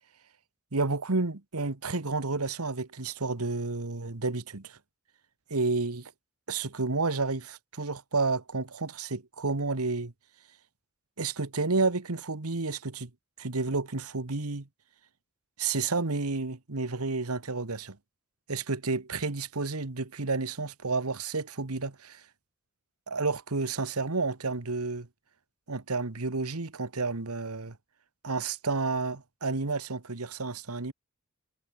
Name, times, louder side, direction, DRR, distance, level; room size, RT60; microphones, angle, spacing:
voice 1, 0.7-4.8 5.5-6.1 6.5-10.1 11.2-13.1 13.4-14.7 15.6-18.0 18.5-22.2 23.1-25.1 25.7-27.8 28.2-30.9, right 3 dB, 85° right, 1.5 m, -31 dB
head